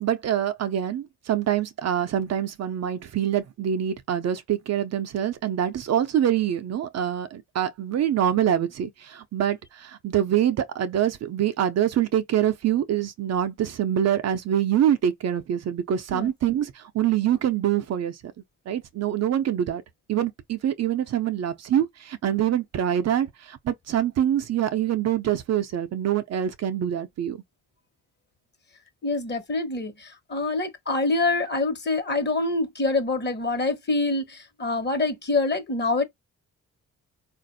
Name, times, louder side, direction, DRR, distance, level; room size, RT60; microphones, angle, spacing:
voice 1, 0.0-18.2 18.7-19.8 20.1-27.4, right 10 dB, 55° right, 0.5 m, -25 dB
voice 2, 29.0-36.0, left 3 dB, 35° left, 1.1 m, -26 dB
3.9 x 2.5 x 2.6 m
cardioid pair, 80°, 30 cm